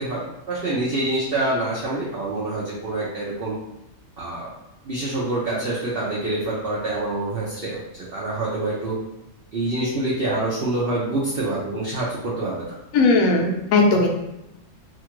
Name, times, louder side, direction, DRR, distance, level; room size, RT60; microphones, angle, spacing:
voice 1, 0.0-3.5 4.2-4.5 4.8-9.0 9.5-12.8, right 2 dB, 60° right, -6 dB, 0.6 m, -26 dB
voice 2, 12.9-14.1, left 3 dB, 75° left, 2 dB, 1.0 m, -17 dB
2.8 x 2.3 x 2.9 m, 0.89 s
omnidirectional pair, 1.5 m